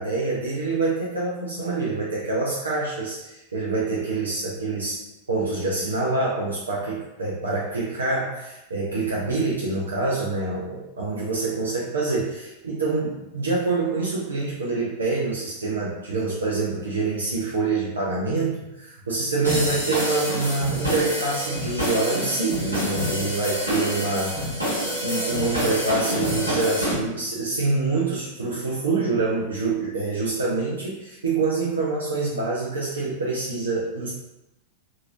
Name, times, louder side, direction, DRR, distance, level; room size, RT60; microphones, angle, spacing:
voice 1, 0.0-5.0 5.3-24.4 24.8-34.1, right 3 dB, 75° right, -6 dB, 0.5 m, -26 dB
sound 1, 19.4-26.9, equal, 90° left, 1.0 m, -27 dB
2.9 x 2.6 x 2.5 m, 0.93 s
figure-of-eight pair, 90°, 0 cm